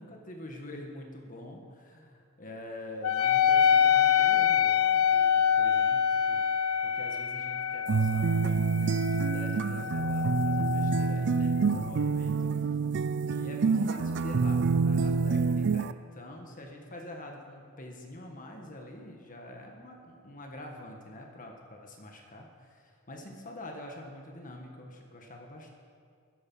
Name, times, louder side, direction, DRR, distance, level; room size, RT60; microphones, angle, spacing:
voice 1, 0.0-6.0 6.3-6.5 6.8-12.7 13.3-25.7, left 1 dB, 40° left, 2 dB, 1.5 m, -45 dB
Wind instrument woodwind instrument, 3.0-12.0, left 8 dB, 75° left, 0.5 m, -26 dB
sound 1, 7.9-15.9, right 5 dB, 55° right, 0.4 m, -27 dB
15.0 x 13.0 x 5.6 m, 2.2 s
head